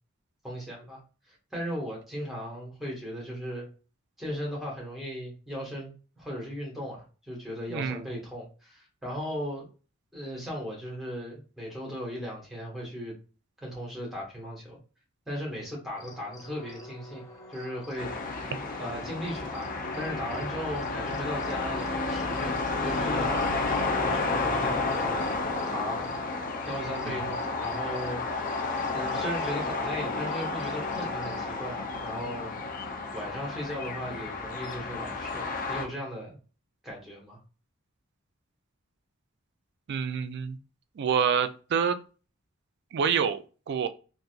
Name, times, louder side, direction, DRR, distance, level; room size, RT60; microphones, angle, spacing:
voice 1, 0.4-1.0 1.3-3.7 4.2-9.7 10.1-13.1 13.6-14.8 15.3-17.2 17.5-18.4 18.8-23.7 24.0-25.2 25.7-26.1 26.7-28.2 28.9-32.5 33.1-36.4 36.8-37.4, equal, ahead, -3 dB, 1.4 m, -37 dB
voice 2, 7.7-8.0 27.1-27.2 39.9-40.6 41.0-42.0 42.9-43.9, right 7 dB, 55° right, 10 dB, 0.3 m, -27 dB
sound 1, 15.9-31.4, equal, 15° left, 0.8 m, -47 dB
sound 2, 18.0-35.9, left 3 dB, 40° left, 0.5 m, -31 dB
3.8 x 2.5 x 2.3 m, 0.35 s
head